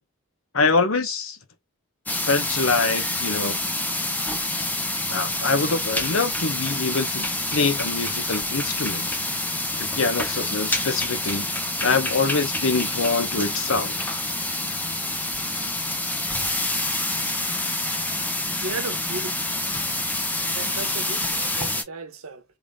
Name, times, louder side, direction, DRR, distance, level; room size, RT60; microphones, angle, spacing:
voice 1, 0.5-1.4 2.1-3.6 5.1-7.3 7.5-9.1 9.8-11.5 11.8-14.0, left 4 dB, 70° left, 0.9 m, -24 dB
sound 1, 2.1-21.8, left 1 dB, 10° left, 0.5 m, -27 dB
voice 2, 18.6-19.4 20.5-22.4, right 3 dB, 80° right, 1.0 m, -35 dB
3.7 x 3.4 x 2.3 m
head